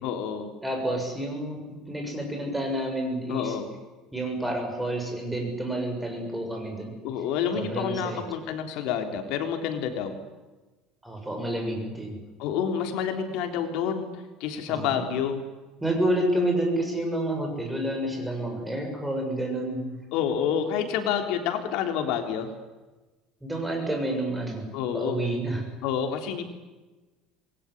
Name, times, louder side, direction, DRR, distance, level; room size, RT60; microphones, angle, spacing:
voice 1, 0.0-0.5 3.3-3.7 7.0-10.2 12.4-15.4 20.1-22.5 24.7-25.2 25.8-26.4, left 8 dB, 65° left, 5 dB, 3.6 m, -28 dB
voice 2, 0.6-1.6 1.9-3.5 4.1-6.9 7.5-8.2 11.0-12.2 14.7-15.0 15.8-19.8 23.4-24.7 24.9-25.6, right 1 dB, 5° right, 2 dB, 7.0 m, -29 dB
27.5 x 21.5 x 10.0 m, 1.2 s
cardioid pair, 160°, 0 cm